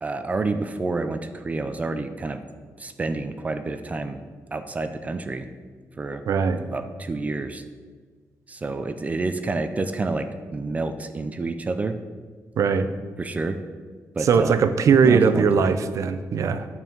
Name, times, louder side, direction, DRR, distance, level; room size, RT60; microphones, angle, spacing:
voice 1, 0.0-2.4 2.8-4.2 4.5-5.5 6.0-6.2 6.6-7.6 8.5-12.0 13.2-13.6 14.1-14.7 15.0-15.8, right 3 dB, 25° right, 9 dB, 0.5 m, -29 dB
voice 2, 6.3-6.6 12.6-12.9 14.2-16.7, right 6 dB, 60° right, 10 dB, 0.7 m, -19 dB
9.5 x 5.5 x 7.2 m, 1.6 s
wide cardioid pair, 150°, 6 cm